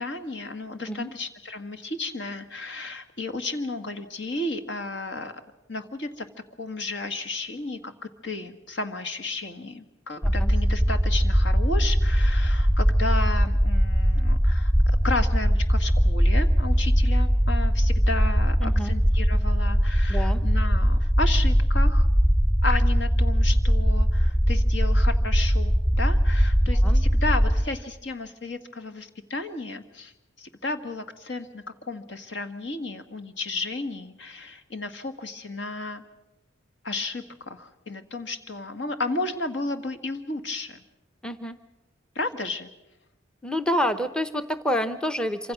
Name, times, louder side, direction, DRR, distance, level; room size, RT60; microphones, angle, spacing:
voice 1, 0.0-5.3 5.7-6.3 6.6-7.9 8.2-22.1 22.6-30.1 30.4-36.0 36.8-40.8 42.2-42.7, left 2 dB, 65° left, 8 dB, 1.9 m, -33 dB
sound 1, 10.2-27.6, equal, 20° left, 2.7 m, -21 dB
voice 2, 18.6-18.9 20.1-20.4 26.8-27.0 41.2-41.6 43.4-45.5, equal, 5° left, 11 dB, 0.8 m, -28 dB
27.0 x 25.5 x 6.2 m, 0.99 s
head